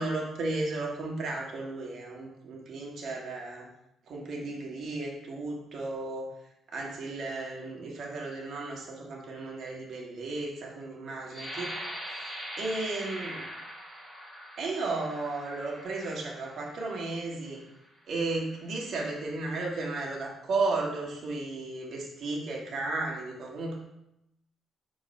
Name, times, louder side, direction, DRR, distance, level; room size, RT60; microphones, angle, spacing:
voice 1, 0.0-3.7 4.1-6.3 6.7-11.7 12.0-13.4 14.6-17.6 18.1-23.8, right 3 dB, 50° right, -2 dB, 1.6 m, -34 dB
sound 1, 11.3-17.0 17.6-17.8 18.2-18.7, equal, 15° left, 1.6 m, -42 dB
6.5 x 3.2 x 5.2 m, 0.84 s
cardioid pair, 150°, 0 cm